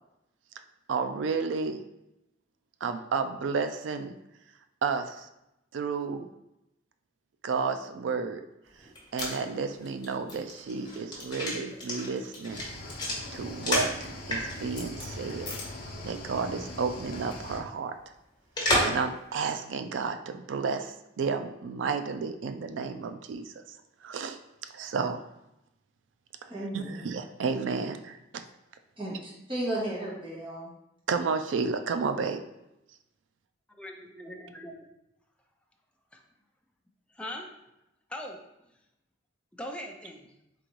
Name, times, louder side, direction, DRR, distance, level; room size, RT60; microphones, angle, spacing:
voice 1, 0.9-1.8 2.8-4.1 4.8-5.3 5.7-6.3 7.4-8.4 9.1-12.6 13.3-15.5 16.0-18.0 18.8-23.8 24.0-24.4 24.7-25.2 26.7-28.4 31.1-32.4, right 5 dB, 75° right, 8 dB, 0.4 m, -31 dB
sound 1, 8.8-14.0 14.3-15.0 15.4-15.6 15.9-16.0 18.6-19.0 19.4-19.5, left 1 dB, 25° left, 1.1 m, -31 dB
Cricket / Waves surf, 12.5-17.6, left 1 dB, 50° left, 0.7 m, -41 dB
voice 2, 26.5-27.0 29.0-30.7, right 1 dB, 30° right, -5 dB, 1.4 m, -34 dB
voice 3, 33.8-34.9 36.1-36.2 37.1-37.5 38.1-38.4 39.5-40.3, left 1 dB, 5° left, 1 dB, 0.4 m, -40 dB
3.8 x 3.4 x 3.1 m, 0.87 s
head